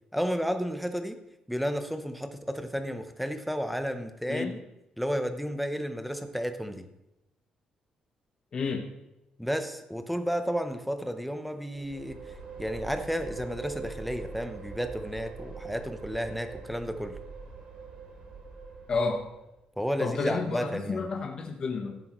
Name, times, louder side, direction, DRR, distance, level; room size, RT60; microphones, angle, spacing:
voice 1, 0.1-1.2 1.5-4.6 5.0-6.9 9.4-12.2 12.6-17.2 19.8-21.1, equal, ahead, 7 dB, 0.7 m, -32 dB
voice 2, 4.3-4.6 8.5-8.9 18.9-19.3 20.0-22.0, left 4 dB, 40° left, 2 dB, 1.0 m, -30 dB
sound 1, 11.7-19.6, right 4 dB, 55° right, 2.9 m, -43 dB
15.0 x 7.8 x 3.1 m, 0.91 s
cardioid pair, 155°, 2 cm